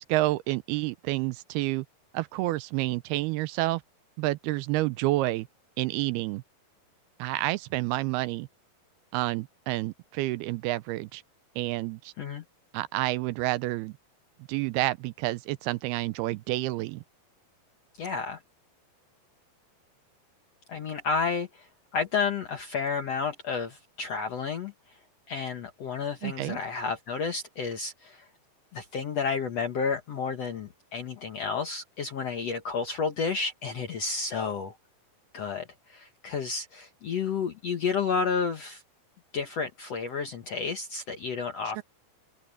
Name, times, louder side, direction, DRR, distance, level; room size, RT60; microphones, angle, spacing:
voice 1, 0.0-1.9 2.1-3.8 4.2-5.5 5.8-6.4 7.2-8.5 9.1-11.2 11.6-12.1 12.7-13.9 14.5-17.0 26.2-26.6 41.8-41.9, right 18 dB, 85° right, 2.5 m, -29 dB
voice 2, 18.0-18.4 20.7-24.7 25.3-28.3 28.7-34.7 35.3-38.8 39.3-41.8, left 5 dB, 65° left, 1.6 m, -31 dB
open air
omnidirectional pair, 4.6 m